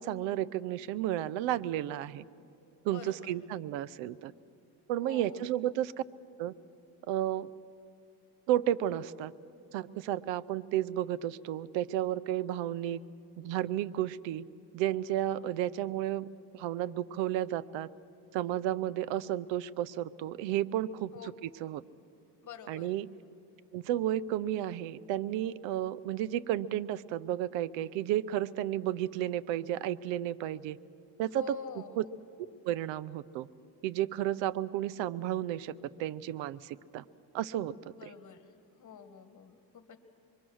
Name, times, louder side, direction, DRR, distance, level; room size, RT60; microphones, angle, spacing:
voice 1, 0.0-2.2 2.8-4.3 4.9-5.9 6.4-6.5 7.1-7.5 8.5-9.3 9.7-13.0 13.4-14.4 14.7-16.3 16.5-17.9 18.3-21.8 22.7-23.1 23.7-30.8 31.2-32.0 32.6-33.5 33.8-35.7 36.0-37.0 37.3-37.7 38.0-38.1, right 12 dB, 90° right, 18 dB, 0.7 m, -32 dB
voice 2, 2.8-3.3 5.0-5.4 21.1-21.3 22.4-22.9 31.4-31.9 37.9-38.5 38.8-40.0, left 7 dB, 45° left, 9 dB, 1.8 m, -46 dB
26.0 x 22.5 x 6.3 m, 2.5 s
cardioid pair, 110°, 44 cm